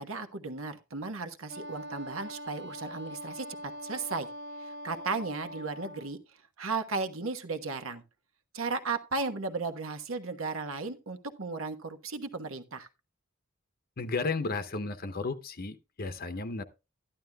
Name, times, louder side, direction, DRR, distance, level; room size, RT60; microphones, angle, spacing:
voice 1, 0.0-4.3 4.6-6.2 6.6-8.0 8.5-12.9, right 4 dB, 75° right, 1.2 m, -35 dB
Wind instrument woodwind instrument, 1.5-6.1, equal, 55° right, 1.0 m, -43 dB
voice 2, 14.0-16.6, left 3 dB, 45° left, 0.7 m, -33 dB
13.0 x 11.5 x 2.3 m
head